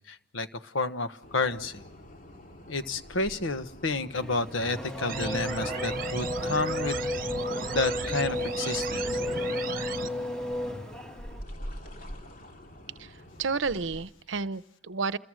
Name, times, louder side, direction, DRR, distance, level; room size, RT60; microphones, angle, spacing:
voice 1, 0.1-1.8 2.7-7.0 7.7-9.1, left 3 dB, 85° left, 10 dB, 1.3 m, -30 dB
sound 1, 1.2-14.1, equal, 45° left, 2.6 m, -47 dB
Race car auto racing / Accelerating revving vroom, 4.1-11.4, left 1 dB, 5° left, 1.8 m, -33 dB
sound 2, 5.1-10.1, right 5 dB, 45° right, 1.1 m, -36 dB
voice 2, 13.4-15.2, right 4 dB, 70° right, 15 dB, 0.8 m, -31 dB
29.0 x 22.0 x 6.4 m, 0.81 s
head